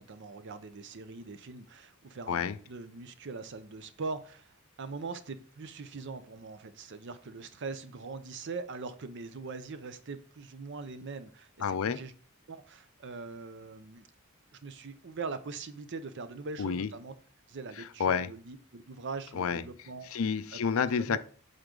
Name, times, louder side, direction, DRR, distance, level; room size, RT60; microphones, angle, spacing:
voice 1, 0.0-2.4 2.7-12.1 12.5-14.1 14.6-17.1 17.5-20.1 20.5-20.6 21.0-21.2, right 4 dB, 55° right, 0.6 m, -42 dB
voice 2, 11.6-12.0 16.6-16.9 18.0-18.3 19.3-19.6 20.1-21.2, left 6 dB, 70° left, 0.4 m, -29 dB
7.9 x 3.7 x 3.8 m
head